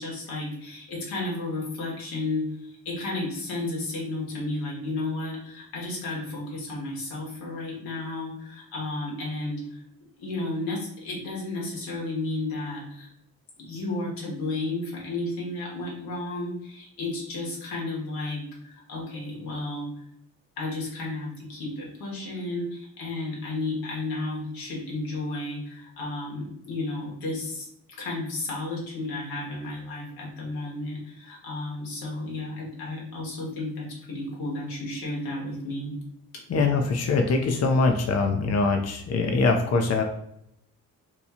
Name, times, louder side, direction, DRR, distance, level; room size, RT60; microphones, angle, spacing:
voice 1, 0.0-9.8 10.2-13.1 13.6-19.9 20.6-27.7 28.0-36.0, left 2 dB, 85° left, -3 dB, 1.3 m, -33 dB
voice 2, 36.5-40.0, left 3 dB, 45° left, 4 dB, 0.6 m, -23 dB
2.9 x 2.3 x 4.2 m, 0.76 s
supercardioid pair, 55°, 35 cm